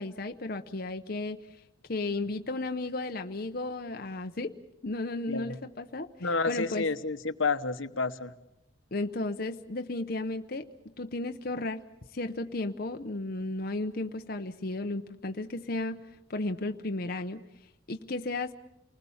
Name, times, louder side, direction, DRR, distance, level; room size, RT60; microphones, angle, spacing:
voice 1, 0.0-1.4 1.9-4.5 4.8-6.8 8.9-10.7 11.0-11.9 12.1-17.4 17.9-18.5, left 2 dB, 50° left, 6 dB, 0.8 m, -34 dB
voice 2, 6.2-8.3, left 4 dB, 80° left, 10 dB, 1.1 m, -30 dB
29.0 x 20.5 x 7.2 m, 0.86 s
head